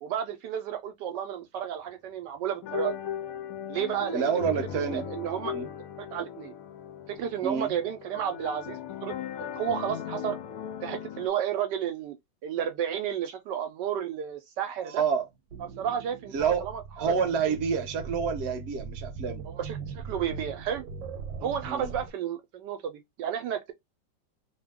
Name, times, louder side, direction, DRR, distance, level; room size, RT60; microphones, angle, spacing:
voice 1, 0.0-3.0 3.7-5.5 6.1-6.5 7.1-9.1 9.4-10.4 10.8-12.2 12.4-15.0 15.6-17.1 19.5-20.8 21.4-23.7, right 9 dB, 75° right, 1.1 m, -32 dB
sound 1, 2.6-11.3, left 9 dB, 70° left, 0.8 m, -38 dB
voice 2, 4.1-5.0 5.5-5.7 7.4-7.7 14.8-15.3 16.3-16.7 17.0-19.4 21.4-21.9, right 6 dB, 50° right, 0.8 m, -28 dB
sound 2, 15.0-22.1, right 5 dB, 90° right, 1.3 m, -40 dB
3.0 x 2.2 x 3.5 m
omnidirectional pair, 2.0 m